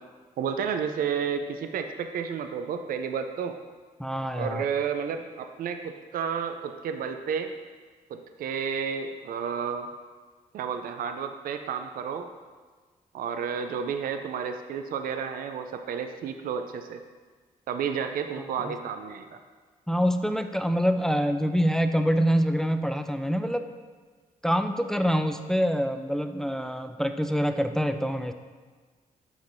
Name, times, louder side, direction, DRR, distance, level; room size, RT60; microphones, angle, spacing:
voice 1, 0.4-3.6 4.3-7.5 8.1-9.9 10.5-12.3 13.1-17.0 17.7-19.4, right 7 dB, 75° right, 7 dB, 0.4 m, -31 dB
voice 2, 4.0-4.7 18.5-18.7 19.9-23.7 24.4-28.3, equal, 5° left, 8 dB, 0.4 m, -25 dB
7.9 x 5.3 x 2.6 m, 1.4 s
cardioid pair, 60°, 15 cm